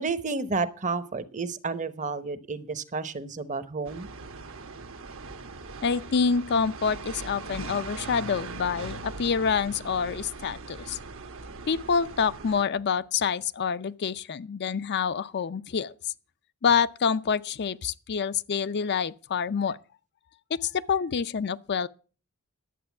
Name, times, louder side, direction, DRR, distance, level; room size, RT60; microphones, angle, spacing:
voice 1, 0.0-4.1, right 4 dB, 35° right, 0.9 m, -31 dB
sound 1, 3.9-12.6, right 3 dB, 65° right, 1.2 m, -40 dB
voice 2, 5.8-11.0 11.7-15.9 16.6-19.8 20.5-21.9, left 6 dB, 50° left, 0.5 m, -27 dB
11.0 x 7.7 x 7.1 m
head